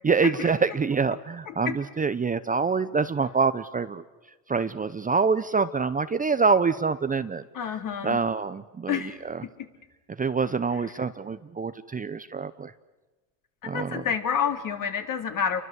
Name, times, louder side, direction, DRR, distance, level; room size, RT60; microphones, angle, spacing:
voice 1, 0.0-4.0 4.5-7.4 8.0-9.4 10.2-12.7 13.6-14.0, right 5 dB, 20° right, 11 dB, 0.8 m, -26 dB
voice 2, 7.5-8.2 8.9-9.1 9.4-9.7 13.6-15.6, left 7 dB, 45° left, 6 dB, 3.3 m, -28 dB
29.0 x 23.5 x 8.2 m, 1.2 s
supercardioid pair, 90°, 45 cm